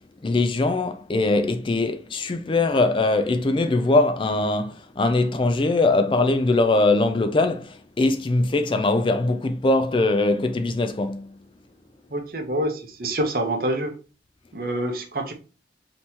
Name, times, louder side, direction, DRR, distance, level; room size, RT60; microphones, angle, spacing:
voice 1, 0.2-11.3, left 2 dB, 25° left, 0.3 m, -21 dB
voice 2, 12.1-14.0 14.5-15.3, right 1 dB, 50° right, 0.9 m, -26 dB
5.3 x 3.0 x 2.8 m
head